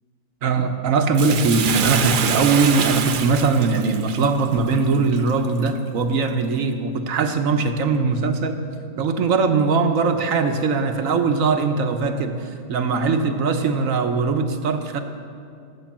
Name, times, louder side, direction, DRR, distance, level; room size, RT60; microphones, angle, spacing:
voice 1, 0.4-8.6 9.0-15.0, right 4 dB, 70° right, 7 dB, 1.4 m, -21 dB
Bathtub (filling or washing), 1.1-5.7 6.2-6.3, right 7 dB, 55° right, 0.6 m, -26 dB
17.5 x 7.9 x 7.5 m, 2.4 s
omnidirectional pair, 1.5 m